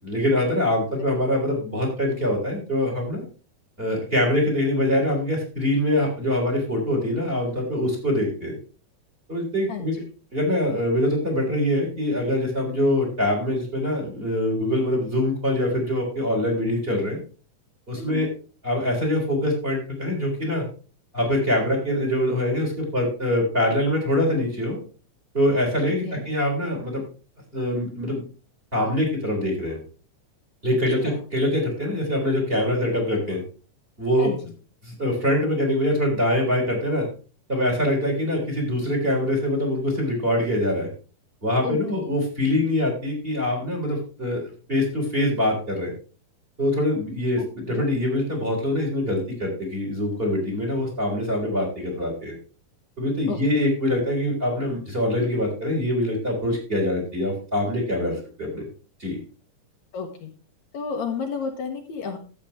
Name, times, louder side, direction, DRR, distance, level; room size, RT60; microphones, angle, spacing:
voice 1, 0.0-3.2 3.8-8.5 9.3-9.9 10.3-17.2 17.9-18.3 18.6-20.7 21.1-24.8 25.3-27.0 27.5-28.2 28.7-29.8 30.6-33.4 34.0-34.3 34.8-37.1 37.5-40.9 41.4-44.4 44.7-45.9 46.6-52.3 53.0-58.6 59.0-59.2, left 1 dB, 15° right, 1 dB, 3.7 m, -24 dB
voice 2, 9.7-10.1 18.0-18.4 26.0-26.3 31.0-31.2 34.2-34.5 41.6-42.2 47.4-47.9 53.3-53.4 59.9-60.3 60.7-62.2, left 6 dB, 70° left, 3 dB, 2.4 m, -32 dB
13.0 x 8.4 x 3.5 m, 0.36 s
omnidirectional pair, 3.6 m